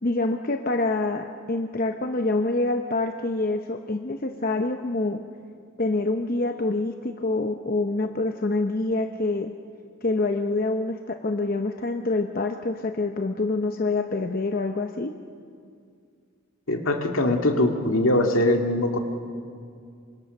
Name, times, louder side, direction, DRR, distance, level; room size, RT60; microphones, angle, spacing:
voice 1, 0.0-5.2 5.8-9.5 10.0-15.1, left 2 dB, 40° left, 5 dB, 0.8 m, -26 dB
voice 2, 16.7-19.0, left 1 dB, 75° left, 3 dB, 2.1 m, -22 dB
26.5 x 25.0 x 6.7 m, 2.3 s
head